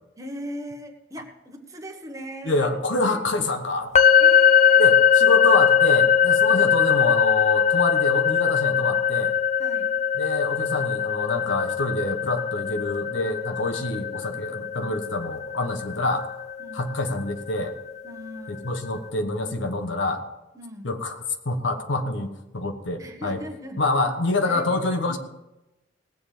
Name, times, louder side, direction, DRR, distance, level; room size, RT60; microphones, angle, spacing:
voice 1, 0.2-2.7 3.1-3.2 4.2-4.9 6.4-6.7 9.6-10.0 16.6-16.9 18.0-18.7 20.5-20.9 23.0-23.8 24.4-25.2, equal, 20° right, 3 dB, 1.4 m, -39 dB
voice 2, 2.5-3.9 4.8-9.3 10.2-16.3 16.7-17.7 18.5-20.2 20.8-23.4 23.8-25.2, left 2 dB, 80° left, 6 dB, 1.3 m, -26 dB
sound 1, 4.0-17.8, left 8 dB, 40° left, 0.5 m, -21 dB
18.5 x 7.7 x 5.1 m, 0.98 s
head